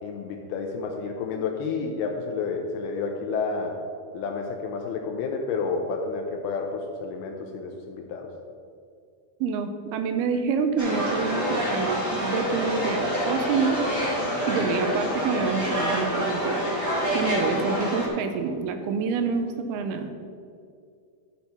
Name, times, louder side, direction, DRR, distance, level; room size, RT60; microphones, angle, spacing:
voice 1, 0.0-3.8 4.1-8.3, left 4 dB, 85° left, 2 dB, 2.5 m, -30 dB
voice 2, 9.4-13.8 14.5-16.6 17.1-20.1, right 5 dB, 80° right, 7 dB, 2.6 m, -27 dB
sound 1, 10.8-18.1, equal, 20° right, 0.4 m, -27 dB
12.0 x 4.4 x 5.5 m, 2.3 s
omnidirectional pair, 4.5 m